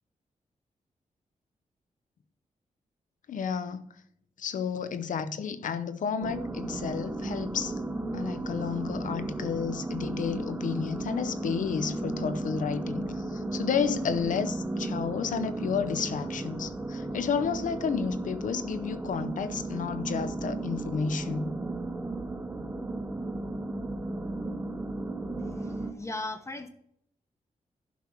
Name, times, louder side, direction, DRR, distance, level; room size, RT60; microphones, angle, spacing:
voice 1, 3.3-3.9 4.4-7.8 8.1-21.5, left 6 dB, 85° left, 0.8 m, -31 dB
sound 1, 6.2-25.9, right 2 dB, 15° right, 0.9 m, -34 dB
voice 2, 25.4-26.7, left 2 dB, 20° left, 0.9 m, -38 dB
11.0 x 6.0 x 4.5 m
wide cardioid pair, 120°, 13 cm